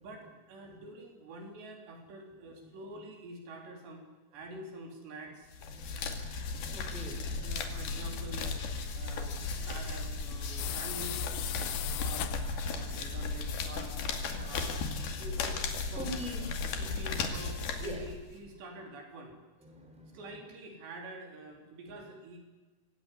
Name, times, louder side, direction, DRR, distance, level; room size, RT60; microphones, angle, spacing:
voice 1, 0.0-4.0 4.3-5.5 7.4-8.6 8.9-11.4 12.0-12.4 12.7-14.0 14.4-14.8 15.2-16.1 16.8-19.3 20.1-22.4, right 2 dB, 65° right, 3 dB, 5.5 m, -46 dB
voice 2, 2.5-3.0 4.5-4.6 5.6-7.7 14.9-17.0 17.8-18.1 19.6-20.4 21.9-22.0, equal, ahead, 3 dB, 4.6 m, -46 dB
sound 1, 5.5-18.4, left 4 dB, 55° left, 3.9 m, -36 dB
sound 2, 10.6-12.8, left 15 dB, 80° left, 3.4 m, -38 dB
25.0 x 17.5 x 10.0 m, 1.2 s
omnidirectional pair, 5.5 m